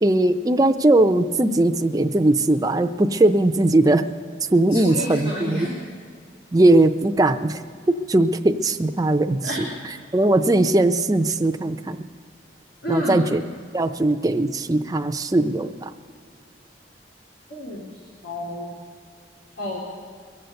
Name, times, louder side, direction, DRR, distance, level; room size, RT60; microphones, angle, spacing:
voice 1, 0.0-4.0 4.5-5.7 6.5-7.6 7.9-12.1 12.9-13.4 13.7-15.9, right 2 dB, 20° right, 8 dB, 0.5 m, -19 dB
voice 2, 4.7-5.8 9.4-9.8 12.8-13.3 17.5-17.9 18.2-18.7 19.6-19.8, left 1 dB, 80° left, -4 dB, 2.5 m, -29 dB
22.5 x 7.8 x 6.9 m, 2.1 s
head